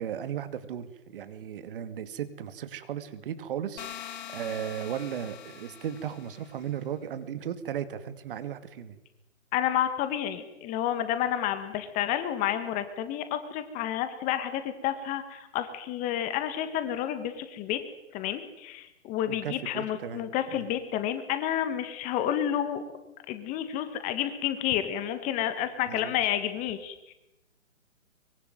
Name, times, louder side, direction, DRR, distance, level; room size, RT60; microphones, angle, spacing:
voice 1, 0.0-9.0 19.3-20.2 20.5-20.6 25.9-26.1, right 9 dB, 40° right, 12 dB, 2.5 m, -36 dB
sound 1, 3.8-6.7, left 10 dB, 35° left, 3.9 m, -44 dB
voice 2, 9.5-17.8 18.1-22.8 23.3-27.1, left 11 dB, 20° left, 10 dB, 1.9 m, -30 dB
24.0 x 23.5 x 9.3 m, 0.93 s
figure-of-eight pair, 140°, 40 cm